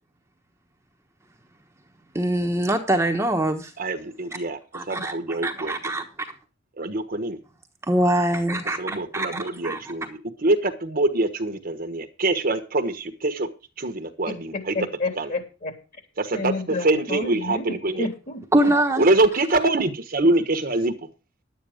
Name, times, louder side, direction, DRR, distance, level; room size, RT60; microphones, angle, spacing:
voice 1, 2.1-3.7 4.7-6.3 7.9-9.8 18.5-19.0, right 1 dB, 15° right, 3 dB, 1.2 m, -23 dB
voice 2, 3.8-4.6 4.9-5.7 6.8-7.4 8.8-13.5 13.8-14.7 15.2-15.3 16.2-18.1 19.0-21.1, right 2 dB, 50° right, 8 dB, 1.3 m, -24 dB
voice 3, 14.5-15.7 16.3-18.4, left 3 dB, 45° left, 4 dB, 3.4 m, -30 dB
11.0 x 9.2 x 5.1 m, 0.32 s
head